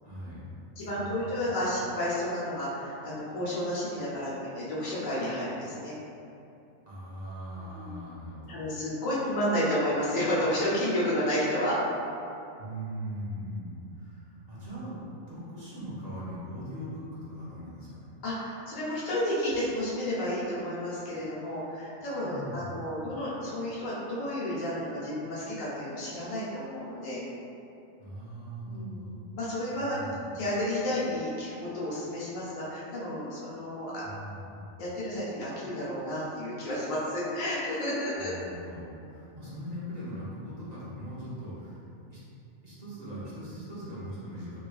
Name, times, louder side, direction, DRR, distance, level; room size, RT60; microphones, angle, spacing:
voice 1, 0.0-1.5 6.9-8.6 12.6-15.0 15.3-18.1 22.2-22.9 28.0-29.2 29.8-30.3 34.0-34.6 38.2-41.8 42.1-42.2 42.6-44.6, equal, 35° right, -11 dB, 0.9 m, -40 dB
voice 2, 0.8-5.9 7.6-8.0 8.5-11.8 18.2-27.2 28.6-29.0 29.3-30.0 30.3-33.9 34.8-38.3, left 1 dB, 75° left, -8 dB, 1.3 m, -31 dB
3.2 x 3.0 x 2.4 m, 2.7 s
omnidirectional pair, 1.4 m